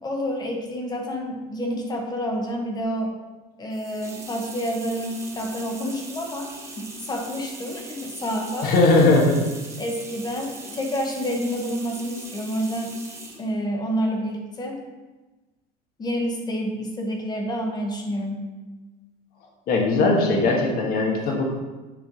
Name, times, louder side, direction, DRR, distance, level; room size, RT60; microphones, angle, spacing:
voice 1, 0.0-3.1 3.6-8.7 9.8-13.0 13.4-14.8 16.0-18.5, equal, 20° left, 2 dB, 1.1 m, -28 dB
sound 1, 3.7-13.5, right 2 dB, 15° right, 1.1 m, -40 dB
voice 2, 8.6-9.4 19.7-21.5, left 2 dB, 50° left, 0 dB, 1.4 m, -19 dB
9.5 x 3.3 x 3.9 m, 1.2 s
cardioid pair, 130°, 19 cm